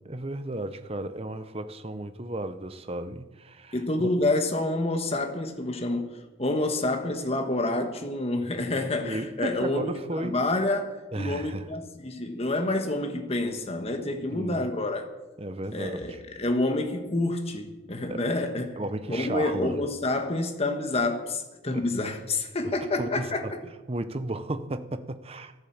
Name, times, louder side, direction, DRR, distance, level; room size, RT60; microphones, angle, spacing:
voice 1, 0.0-4.1 9.0-10.4 11.1-11.7 14.3-14.7 15.4-16.2 18.1-18.2 18.8-19.8 21.7-21.8 23.0-23.4 23.9-25.5, right 1 dB, 30° right, 0.7 m, -34 dB
voice 2, 3.7-15.1 15.7-18.8 19.1-23.6, left 2 dB, 30° left, 1.4 m, -28 dB
14.0 x 11.0 x 7.2 m
head